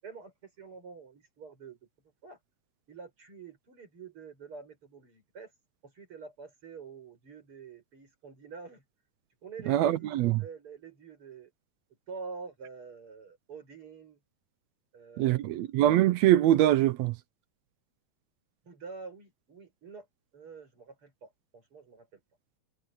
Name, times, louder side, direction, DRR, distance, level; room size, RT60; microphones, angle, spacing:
voice 1, 0.0-1.8 2.2-2.4 2.9-5.5 5.8-8.8 9.4-11.5 12.1-14.2 14.9-15.7 18.6-20.1 20.3-22.2, right 5 dB, 45° right, 6.6 m, -47 dB
voice 2, 9.7-10.4 15.2-17.1, right 13 dB, 75° right, 1.7 m, -23 dB
omnidirectional pair, 3.5 m